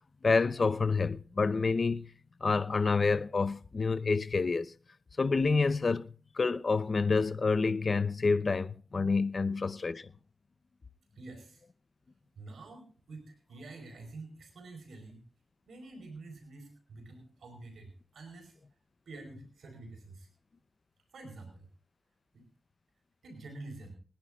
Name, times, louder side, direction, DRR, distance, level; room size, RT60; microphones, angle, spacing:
voice 1, 0.2-2.1 2.4-4.7 5.2-10.1, left 4 dB, 50° left, 0.8 m, -28 dB
voice 2, 11.1-11.6 12.4-15.2 15.7-18.5 19.1-20.3 21.1-21.7 22.3-22.4 23.2-23.9, right 2 dB, 85° right, 4.5 m, -48 dB
29.0 x 10.5 x 2.4 m
cardioid pair, 60°, 0 cm